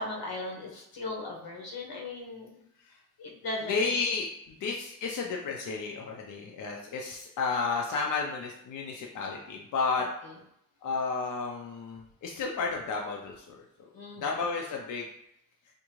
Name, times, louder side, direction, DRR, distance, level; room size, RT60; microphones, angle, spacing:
voice 1, 0.0-2.5 3.2-3.9 10.2-10.3 13.9-14.3, left 2 dB, 90° left, -1 dB, 1.0 m, -37 dB
voice 2, 3.7-10.1 10.8-13.6 14.2-15.1, left 4 dB, 60° left, 0 dB, 0.5 m, -32 dB
3.6 x 2.6 x 3.0 m, 0.76 s
wide cardioid pair, 165°, 35 cm